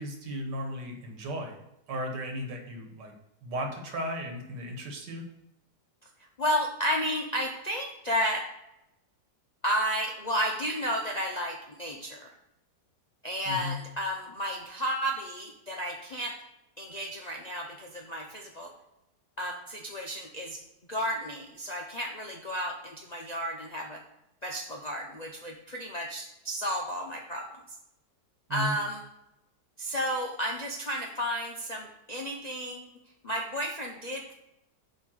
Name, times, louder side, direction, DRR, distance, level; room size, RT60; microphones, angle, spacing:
voice 1, 0.0-1.6 1.9-3.1 3.4-5.2 13.4-13.8 28.5-28.8, equal, 85° right, 2 dB, 1.9 m, -35 dB
voice 2, 6.4-8.5 9.6-12.3 13.2-16.4 16.8-18.7 19.4-20.6 20.9-24.0 24.4-27.5 28.5-29.0 29.8-32.9 33.2-34.3, equal, 75° left, 0 dB, 0.3 m, -32 dB
7.9 x 3.3 x 6.2 m, 0.88 s
omnidirectional pair, 1.8 m